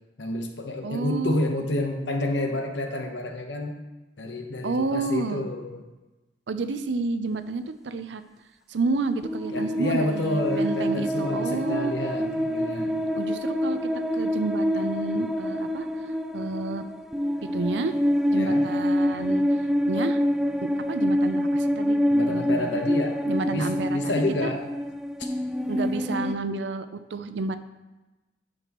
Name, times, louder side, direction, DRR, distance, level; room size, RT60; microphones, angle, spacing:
voice 1, 0.2-3.8 4.2-5.8 9.5-13.0 18.3-18.7 19.2-19.3 22.1-23.2 23.5-24.7 25.2-25.3, left 1 dB, 80° left, 4 dB, 1.0 m, -29 dB
voice 2, 0.8-1.4 4.6-5.4 6.5-8.2 8.7-11.9 13.1-13.8 14.1-15.9 16.3-16.9 17.5-17.9 18.3-20.2 20.6-22.8 23.2-24.5 25.7-27.6, right 3 dB, 75° right, 10 dB, 0.5 m, -30 dB
sound 1, 9.2-26.3, equal, 5° right, 0.3 m, -26 dB
10.5 x 6.1 x 3.0 m, 1.1 s
head